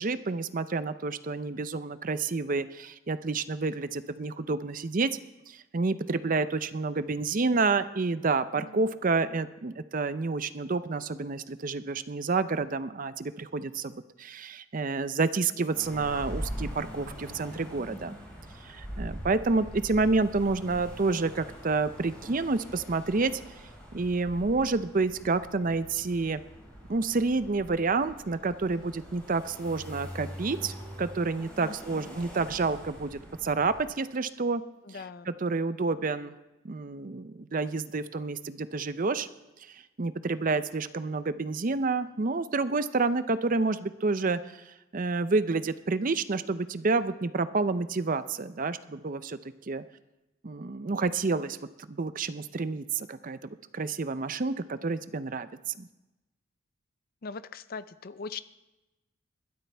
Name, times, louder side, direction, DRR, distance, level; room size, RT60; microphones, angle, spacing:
voice 1, 0.0-5.1 5.5-18.1 18.6-23.3 23.9-26.4 26.9-34.6 35.3-36.3 36.6-39.3 39.6-49.4 49.7-49.8 50.4-53.4 53.7-55.9, right 3 dB, 40° right, 12 dB, 0.5 m, -29 dB
sound 1, 15.7-33.8, equal, 5° left, 5.3 m, -43 dB
voice 2, 31.6-32.1 34.9-35.3 57.2-58.4, left 5 dB, 45° left, 14 dB, 0.5 m, -41 dB
21.0 x 12.5 x 3.4 m, 1.0 s
head